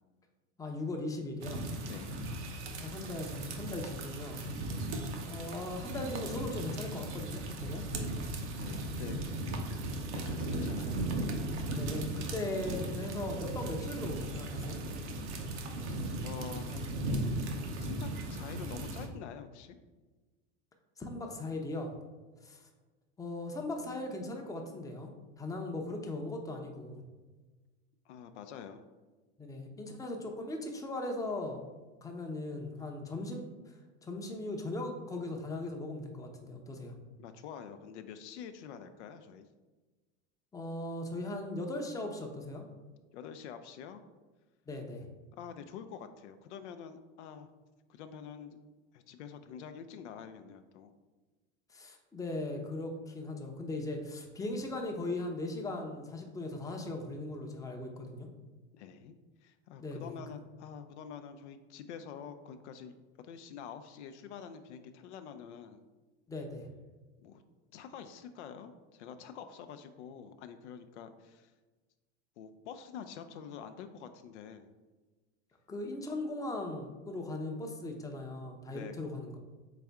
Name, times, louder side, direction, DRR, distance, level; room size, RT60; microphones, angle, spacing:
voice 1, 0.6-1.6 2.8-4.4 5.3-7.8 11.7-14.8 21.0-21.9 22.4-22.6 23.2-27.0 29.4-31.7 32.0-33.5 34.0-36.9 40.5-42.7 44.7-45.1 51.7-58.3 59.8-60.2 66.3-66.7 75.7-79.4, left 2 dB, 10° left, 2 dB, 0.6 m, -38 dB
sound 1, 1.4-19.1, right 1 dB, 80° right, 0.9 m, -37 dB
voice 2, 8.5-9.2 10.1-11.0 16.2-17.0 17.7-19.8 28.1-28.9 37.2-39.5 43.1-44.0 45.3-47.5 47.9-48.6 48.9-50.9 58.7-59.2 59.4-63.0 63.2-65.8 67.2-67.4 67.7-71.5 72.4-74.7 78.7-79.0, left 7 dB, 80° left, 9 dB, 0.5 m, -47 dB
4.1 x 3.6 x 3.4 m, 1.3 s
hypercardioid pair, 100°, 34 cm